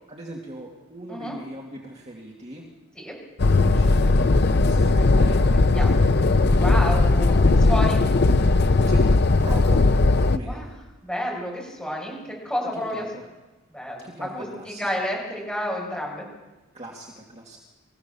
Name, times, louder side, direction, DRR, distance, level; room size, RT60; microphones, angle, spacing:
voice 1, 0.1-2.7 3.6-6.1 8.9-9.0 9.4-9.9 10.2-10.7 12.6-13.2 14.0-14.9 16.7-17.6, right 1 dB, 30° right, -2 dB, 2.5 m, -39 dB
sound 1, 3.4-10.4, left 3 dB, 50° left, 0.6 m, -18 dB
voice 2, 5.5-6.0 6.6-8.0 10.4-10.7 11.0-13.0 13.7-16.3, left 1 dB, 5° left, -3 dB, 6.9 m, -30 dB
26.0 x 15.5 x 7.1 m, 1.1 s
head